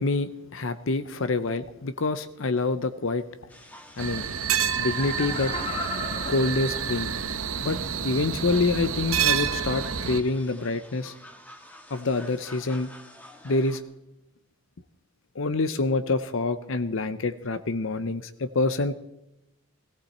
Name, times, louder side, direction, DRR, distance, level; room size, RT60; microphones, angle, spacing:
voice 1, 0.0-3.2 4.0-4.2 4.8-5.5 6.3-7.1 7.6-7.8 8.0-11.1 11.9-12.9 13.4-13.8 15.4-18.9, left 3 dB, 65° left, 12 dB, 0.7 m, -26 dB
sound 1, 3.5-13.8, left 1 dB, 5° left, 1.5 m, -49 dB
sound 2, 4.0-10.2, right 7 dB, 75° right, 0.9 m, -28 dB
Laughter, 4.8-7.4 7.9-8.0, left 2 dB, 25° left, 1.4 m, -36 dB
17.5 x 17.0 x 4.3 m, 0.91 s
head